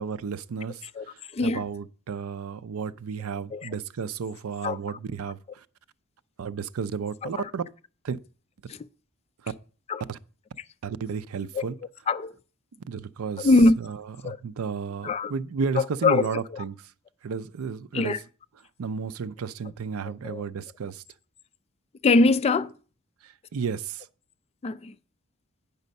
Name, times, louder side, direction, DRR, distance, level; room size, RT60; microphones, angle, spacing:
voice 1, 0.0-5.6 6.4-7.6 8.0-8.2 9.4-9.5 10.1-10.2 10.8-11.8 12.9-13.5 13.8-14.0 14.2-16.8 17.2-18.2 18.8-21.0 23.2-24.1, right 5 dB, 70° right, 0.5 m, -33 dB
voice 2, 1.3-1.6 3.5-3.7 4.6-5.0 7.2-7.5 8.7-8.8 9.9-10.0 11.5-11.7 12.1-12.4 13.4-13.8 14.2-14.4 15.0-15.3 15.8-16.6 17.9-18.2 20.2-20.4 22.0-22.7 24.6-24.9, left 3 dB, 30° left, 0.3 m, -23 dB
9.1 x 5.5 x 5.2 m
head